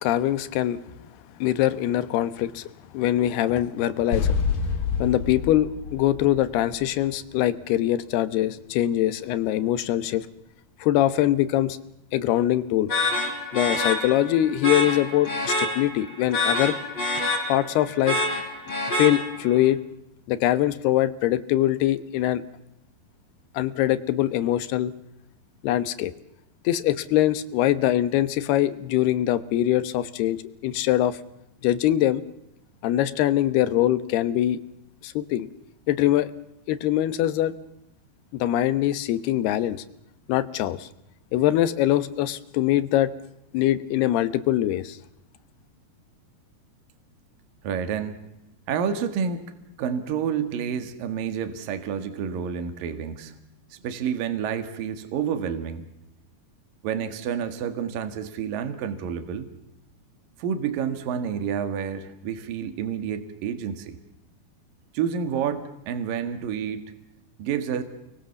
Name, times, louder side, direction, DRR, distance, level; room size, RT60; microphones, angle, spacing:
voice 1, 0.0-0.8 1.4-2.7 2.9-4.3 5.0-10.3 10.8-11.8 12.1-12.9 13.5-16.8 17.5-18.2 18.9-19.8 20.3-22.4 23.5-24.9 25.6-26.1 26.6-31.2 31.6-32.2 32.8-34.6 35.0-35.5 35.9-36.3 36.7-37.5 38.3-39.8 40.3-40.9 41.3-43.1 43.5-45.0, left 13 dB, 85° left, 14 dB, 3.2 m, -23 dB
sound 1, 4.1-7.1, left 6 dB, 60° left, 4.4 m, -27 dB
sound 2, 12.9-19.6, left 1 dB, 30° left, 6.0 m, -27 dB
voice 2, 47.6-48.2 48.7-49.5 49.8-53.3 53.7-55.8 56.8-59.5 60.4-64.0 64.9-66.9 67.4-67.8, right 7 dB, 65° right, 9 dB, 3.4 m, -29 dB
30.0 x 22.0 x 7.1 m, 0.85 s
omnidirectional pair, 4.5 m